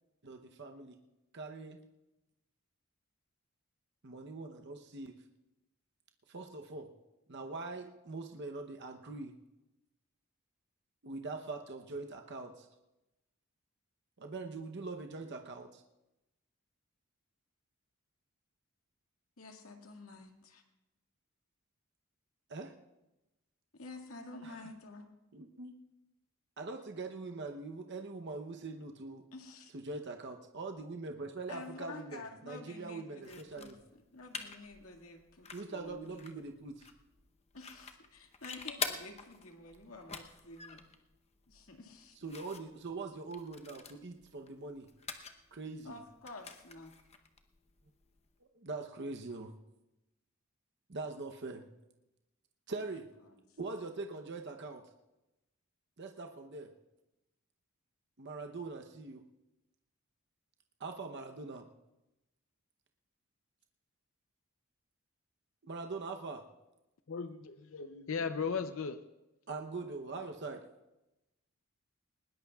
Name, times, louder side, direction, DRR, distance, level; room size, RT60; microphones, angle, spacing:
voice 1, 0.2-1.0 1.3-1.8 4.0-5.2 6.3-6.9 7.3-9.3 11.0-12.7 14.2-15.8 22.5-22.7 24.4-24.5 25.3-25.7 26.6-29.3 29.7-33.8 35.5-36.9 42.2-44.9 45.5-45.9 48.5-49.5 50.9-51.7 52.7-53.1 53.6-54.9 56.0-56.7 58.2-59.2 60.8-61.7 65.6-66.4 69.5-70.6, right 3 dB, 55° right, 4 dB, 0.8 m, -42 dB
voice 2, 19.4-20.6 23.7-25.1 29.3-29.7 31.5-36.2 37.5-40.8 41.5-42.2 45.8-46.9 53.2-53.4, left 3 dB, 85° left, 3 dB, 2.0 m, -50 dB
sound 1, 33.2-48.4, left 5 dB, 30° left, 0.9 m, -47 dB
voice 3, 67.1-69.0, left 5 dB, 65° left, 9 dB, 0.6 m, -36 dB
20.0 x 19.5 x 2.4 m, 0.98 s
head